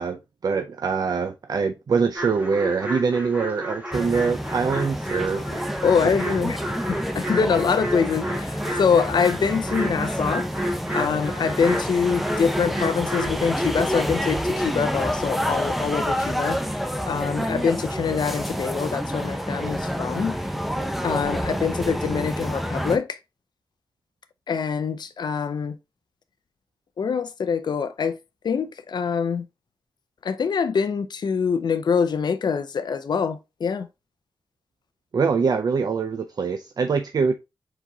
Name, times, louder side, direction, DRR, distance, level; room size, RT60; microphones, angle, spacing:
voice 1, 0.0-5.4 35.1-37.3, right 5 dB, 55° right, 0.4 m, -24 dB
sound 1, 2.2-13.5, equal, 20° right, 1.7 m, -32 dB
sound 2, 3.9-23.0, equal, ahead, 0.6 m, -28 dB
voice 2, 5.8-6.6 6.9-10.5 10.9-20.4 21.0-23.2 24.5-25.8 27.0-28.2 28.4-29.5 30.2-33.9, left 6 dB, 65° left, 0.5 m, -24 dB
4.6 x 4.0 x 2.7 m
wide cardioid pair, 95°, 8 cm